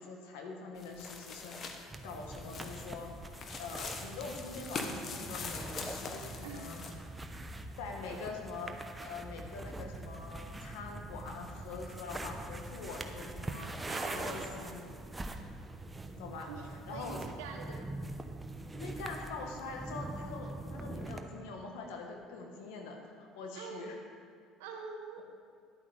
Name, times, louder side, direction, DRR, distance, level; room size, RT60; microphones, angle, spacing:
voice 1, 0.0-1.6 2.0-3.1 3.6-6.8 7.8-13.7 14.0-15.0 16.2-16.5 16.9-17.2 17.7-17.8 18.7-24.0, left 4 dB, 80° left, 2 dB, 1.6 m, -44 dB
sound 1, 0.8-6.9, left 4 dB, 50° left, 1.2 m, -43 dB
sound 2, 1.9-21.2, right 2 dB, 15° right, 0.9 m, -43 dB
voice 2, 6.4-6.8 13.8-14.7 16.5-17.9 23.5-24.0 24.6-25.2, right 4 dB, 85° right, 2 dB, 1.4 m, -45 dB
11.0 x 8.4 x 5.1 m, 2.1 s
supercardioid pair, 80°, 0 cm